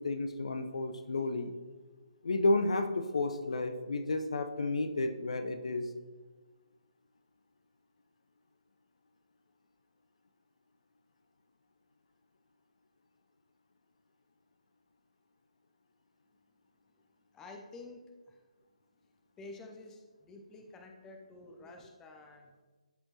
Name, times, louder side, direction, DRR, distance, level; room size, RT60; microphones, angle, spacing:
voice 1, 0.0-1.5 2.2-5.9, left 2 dB, 55° left, 8 dB, 0.6 m, -31 dB
voice 2, 17.3-18.0 18.3-18.4 19.4-22.6, left 2 dB, 10° left, 3 dB, 0.6 m, -50 dB
13.0 x 4.3 x 2.9 m, 1.3 s
figure-of-eight pair, 140°, 4 cm